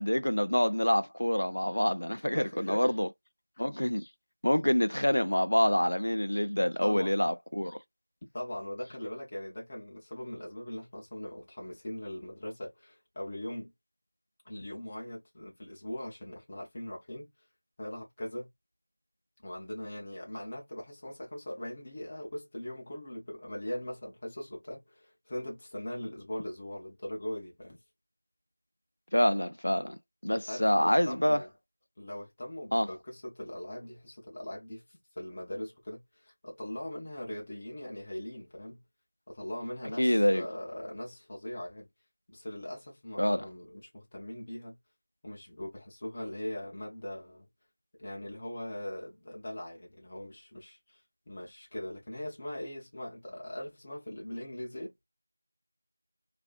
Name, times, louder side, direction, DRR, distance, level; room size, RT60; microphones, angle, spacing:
voice 1, 0.0-3.1 3.6-4.1 4.4-7.8 29.1-30.0 30.2-31.4 32.7-32.9 40.0-40.4 43.2-43.5, equal, 90° left, 0.4 m, -26 dB
voice 2, 2.3-3.0 6.8-7.1 8.3-13.7 14.4-17.3 17.8-18.5 19.4-27.8 30.3-31.5 32.0-34.8 35.2-38.8 39.3-41.9 42.3-44.8 45.2-47.5 48.0-51.0 51.3-54.9, left 1 dB, 15° left, 0.6 m, -40 dB
2.6 x 2.4 x 2.2 m
figure-of-eight pair, 180°, 0 cm